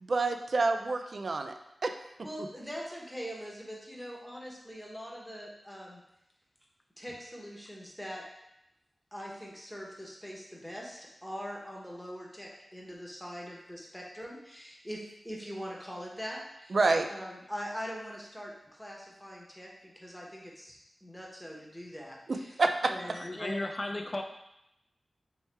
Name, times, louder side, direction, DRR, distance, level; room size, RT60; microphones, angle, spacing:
voice 1, 0.0-1.9 16.7-17.1 22.3-22.9, right 3 dB, 65° right, 7 dB, 0.3 m, -28 dB
voice 2, 2.2-6.0 7.0-8.2 9.1-16.8 17.1-22.6 22.9-23.6, equal, 5° left, -2 dB, 1.0 m, -42 dB
voice 3, 23.1-24.2, left 1 dB, 40° left, 3 dB, 0.5 m, -35 dB
3.1 x 3.1 x 3.3 m, 0.86 s
cardioid pair, 45°, 0 cm